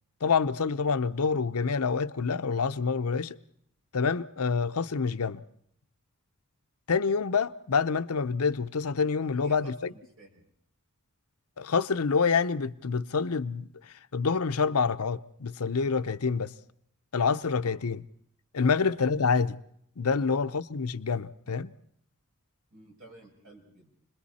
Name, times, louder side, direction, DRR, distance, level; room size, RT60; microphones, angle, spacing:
voice 1, 0.2-3.4 3.9-5.4 6.9-9.9 11.6-13.7 14.1-16.5 17.1-18.0 18.5-19.6 20.0-21.7, left 5 dB, 80° left, 0.7 m, -27 dB
voice 2, 9.2-10.4 17.6-17.9 18.6-18.9 20.1-20.6 22.7-23.9, right 2 dB, 65° right, 6.5 m, -52 dB
29.0 x 21.5 x 4.2 m
head